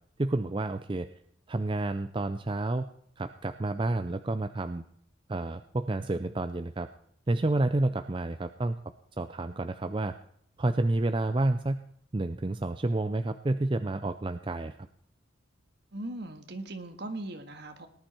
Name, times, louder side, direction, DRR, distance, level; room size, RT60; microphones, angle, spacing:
voice 1, 0.2-1.1 1.5-2.9 3.2-4.8 5.3-6.9 7.3-8.8 9.2-10.2 10.6-11.8 12.1-14.7, right 2 dB, 25° right, 9 dB, 0.4 m, -29 dB
voice 2, 15.9-17.9, right 2 dB, 55° right, 6 dB, 1.7 m, -39 dB
19.0 x 10.5 x 4.4 m, 0.68 s
head